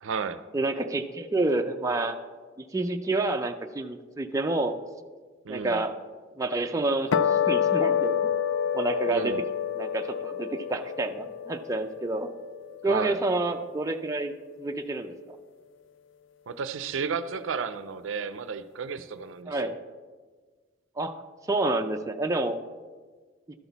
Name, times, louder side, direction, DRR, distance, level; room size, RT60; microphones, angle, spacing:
voice 1, 0.0-0.4 5.4-5.8 9.1-9.4 12.9-13.2 16.5-19.8, right 5 dB, 75° right, 13 dB, 0.5 m, -33 dB
voice 2, 0.5-2.2 2.7-4.8 5.5-5.9 6.4-8.2 8.7-9.3 9.8-12.3 12.8-14.3 14.6-15.4 19.5-19.7 21.0-21.2 21.5-22.6, right 2 dB, 15° right, 5 dB, 0.4 m, -28 dB
sound 1, 7.1-13.6, left 8 dB, 70° left, 0.4 m, -28 dB
12.5 x 6.0 x 4.0 m, 1.4 s
head